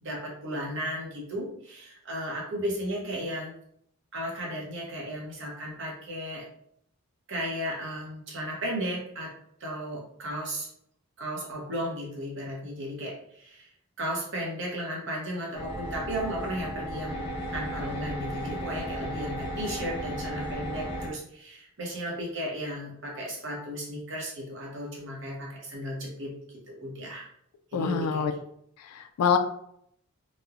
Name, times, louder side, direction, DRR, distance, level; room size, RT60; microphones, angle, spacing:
voice 1, 0.0-3.5 4.1-6.4 7.3-9.3 9.6-10.7 11.2-13.7 14.0-26.3 26.7-27.3 27.7-28.3, equal, 55° right, -3 dB, 0.8 m, -35 dB
sound 1, 15.5-21.1, equal, 25° left, 0.5 m, -35 dB
voice 2, 27.7-28.3 28.9-29.4, left 6 dB, 85° left, 8 dB, 0.3 m, -25 dB
3.0 x 2.1 x 2.4 m, 0.71 s
head